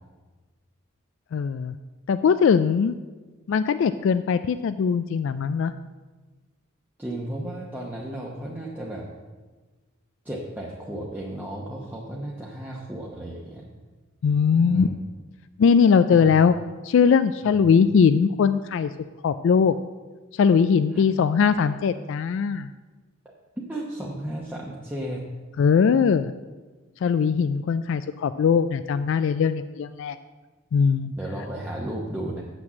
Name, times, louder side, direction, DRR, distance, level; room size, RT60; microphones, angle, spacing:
voice 1, 1.3-1.7 2.1-3.0 3.5-5.7 14.2-14.9 15.6-16.5 16.8-18.9 19.2-19.8 20.3-22.7 25.6-26.3 27.0-30.2 30.7-31.1, left 6 dB, 60° left, 12 dB, 0.3 m, -20 dB
voice 2, 7.0-9.1 10.2-13.7 14.6-14.9 16.1-16.3 17.4-17.6 20.9-21.0 23.7-25.3 31.2-32.4, right 1 dB, 10° right, -4 dB, 0.9 m, -34 dB
7.7 x 6.1 x 7.3 m, 1.3 s
head